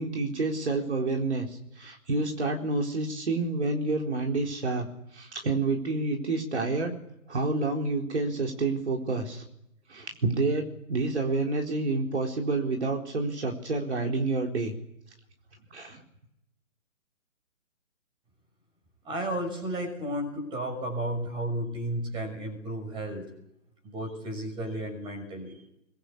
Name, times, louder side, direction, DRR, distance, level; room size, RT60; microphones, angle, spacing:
voice 1, 0.0-4.9 5.1-6.9 7.3-9.4 9.9-10.6 10.9-14.7 15.7-16.0, right 3 dB, 55° right, 1 dB, 4.3 m, -28 dB
voice 2, 19.0-23.3 23.8-25.6, right 1 dB, 10° right, 2 dB, 6.3 m, -33 dB
24.0 x 21.5 x 8.6 m, 0.82 s
figure-of-eight pair, 140°, 41 cm